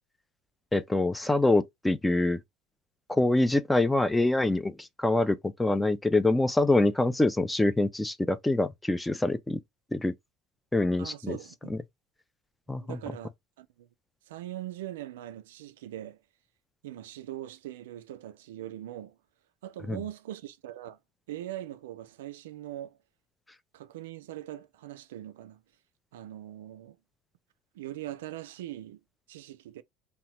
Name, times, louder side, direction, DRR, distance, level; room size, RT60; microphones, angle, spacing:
voice 1, 0.7-2.4 3.1-9.6 9.9-10.1 10.7-11.4 11.7-11.8 12.7-13.0 19.9-20.0, left 2 dB, 10° left, 0.3 m, -25 dB
voice 2, 11.0-11.7 12.8-13.3 13.6-13.9 14.3-16.2 16.8-19.2 19.6-21.0 21.3-23.0 23.7-25.6 26.1-27.0 27.7-29.0 29.3-29.8, right 13 dB, 90° right, 0.3 m, -41 dB
2.8 x 2.1 x 2.8 m
supercardioid pair, 100°, 0 cm